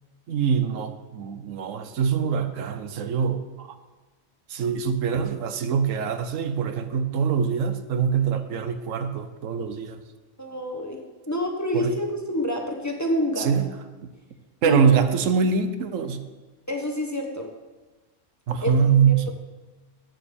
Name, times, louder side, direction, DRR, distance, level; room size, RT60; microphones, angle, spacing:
voice 1, 0.3-3.7 4.5-10.0 11.7-11.9 13.4-13.7 14.6-16.2 18.5-19.3, right 6 dB, 85° right, 10 dB, 1.2 m, -24 dB
voice 2, 10.4-11.0 11.3-13.5 14.6-14.9 16.0-16.1 16.7-17.5 18.6-19.3, left 1 dB, 15° left, 1 dB, 1.1 m, -28 dB
9.2 x 7.0 x 6.9 m, 1.2 s
omnidirectional pair, 1.3 m